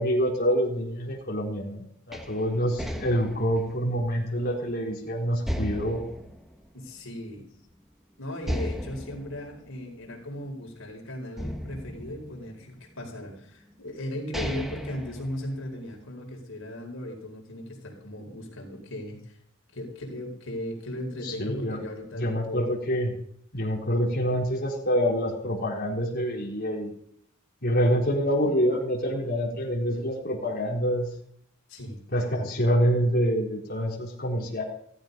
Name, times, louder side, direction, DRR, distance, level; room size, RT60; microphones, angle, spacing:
voice 1, 0.0-6.0 21.2-21.8 22.2-23.1 23.5-26.9 27.6-31.1 32.1-34.6, equal, 50° left, -4 dB, 4.3 m, -26 dB
sound 1, 2.1-4.9 5.5-7.4 7.7-7.8 8.4-10.8 11.4-13.0 13.7-13.8 14.1-16.0, equal, ahead, 1.4 m, -36 dB
voice 2, 6.7-7.5 8.2-19.4 19.7-22.7 31.7-32.0, left 1 dB, 75° left, 1 dB, 4.8 m, -37 dB
16.0 x 14.0 x 5.4 m, 0.66 s
head